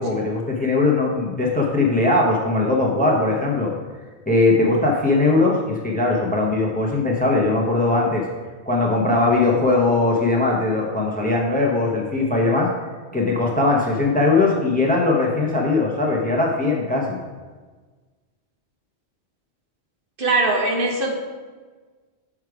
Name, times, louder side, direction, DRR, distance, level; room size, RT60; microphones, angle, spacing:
voice 1, 0.0-3.7 4.3-8.2 8.7-12.7 13.1-17.2, left 2 dB, 10° left, -1 dB, 0.7 m, -20 dB
voice 2, 20.2-21.1, right 2 dB, 55° right, 0 dB, 1.2 m, -20 dB
6.4 x 4.8 x 4.8 m, 1.4 s
omnidirectional pair, 1.2 m